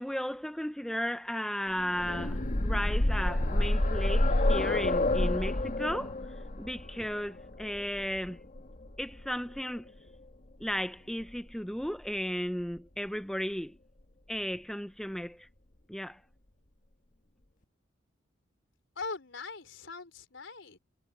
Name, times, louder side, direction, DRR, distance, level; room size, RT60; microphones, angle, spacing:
voice 1, 0.0-6.2 6.6-8.4 9.0-9.9 10.6-13.8 14.3-15.5 15.9-16.2, equal, ahead, 0.5 m, -35 dB
sound 1, 1.8-9.6 10.7-10.8 11.2-11.3, left 1 dB, 40° left, 1.3 m, -29 dB
voice 2, 19.0-20.8, left 4 dB, 75° left, 4.0 m, -41 dB
head